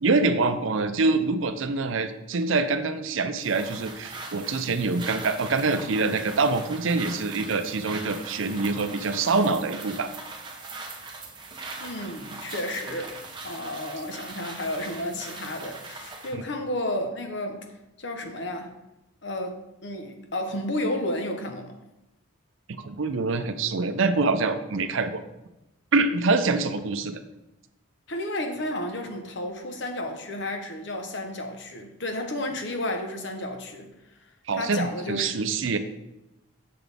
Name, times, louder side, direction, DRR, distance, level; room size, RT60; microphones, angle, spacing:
voice 1, 0.0-10.1 22.8-25.2 25.9-27.2 34.5-35.8, right 3 dB, 65° right, 0.5 m, -25 dB
sound 1, 3.4-16.4, right 3 dB, 20° right, 0.8 m, -40 dB
voice 2, 11.8-13.2 13.4-17.7 18.0-18.7 19.2-21.7 28.1-33.9 34.5-35.4, left 1 dB, 55° left, 0.9 m, -32 dB
6.7 x 6.1 x 3.4 m
head